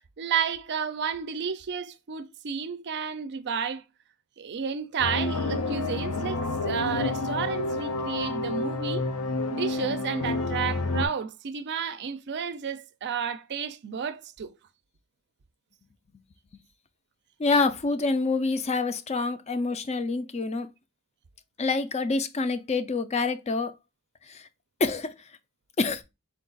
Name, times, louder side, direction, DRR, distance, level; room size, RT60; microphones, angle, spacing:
voice 1, 0.2-3.8 4.4-9.1 9.5-14.5, right 7 dB, 50° right, 0.5 m, -31 dB
sound 1, 5.0-11.1, left 2 dB, 80° left, 0.6 m, -29 dB
voice 2, 17.4-20.7 21.6-23.7 24.3-24.5 24.8-25.1 25.8-26.0, left 3 dB, 30° left, 0.4 m, -27 dB
4.5 x 2.4 x 3.8 m
head